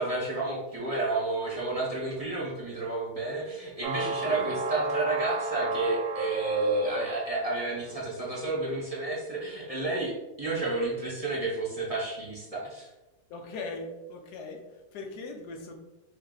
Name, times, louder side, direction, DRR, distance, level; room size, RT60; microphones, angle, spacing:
voice 1, 0.0-12.9, right 2 dB, 25° right, -5 dB, 0.9 m, -31 dB
sound 1, 3.8-7.9, right 3 dB, 85° right, 1.3 m, -33 dB
voice 2, 13.3-15.8, left 3 dB, 75° left, 2 dB, 1.2 m, -39 dB
4.5 x 3.1 x 3.8 m, 1.0 s
omnidirectional pair, 1.7 m